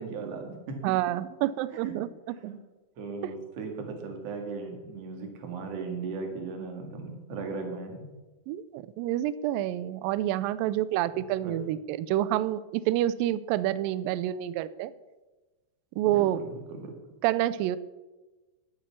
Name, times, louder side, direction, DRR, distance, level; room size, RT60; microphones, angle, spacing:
voice 1, 0.0-0.9 1.7-1.9 2.4-2.6 3.0-8.1 11.4-11.6 16.1-16.9, right 4 dB, 50° right, 4 dB, 2.7 m, -37 dB
voice 2, 0.8-2.4 8.5-14.9 16.0-16.4 17.2-17.8, right 13 dB, 85° right, 16 dB, 2.3 m, -28 dB
12.0 x 8.5 x 7.1 m, 1.2 s
omnidirectional pair, 4.1 m